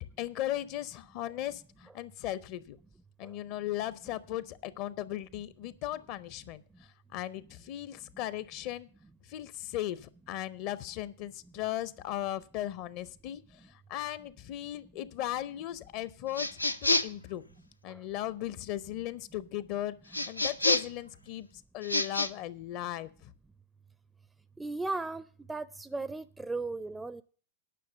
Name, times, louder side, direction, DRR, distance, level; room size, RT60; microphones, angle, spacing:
voice 1, 0.0-2.8 3.2-8.9 9.2-17.4 17.8-21.5 21.7-23.3, left 13 dB, 45° left, 0.6 m, -37 dB
sound 1, 16.3-17.2 20.1-21.0 21.8-22.3, left 2 dB, 90° left, 0.6 m, -28 dB
voice 2, 24.6-27.2, right 3 dB, 10° right, 0.4 m, -36 dB
10.0 x 5.9 x 8.4 m
figure-of-eight pair, 95°, 0 cm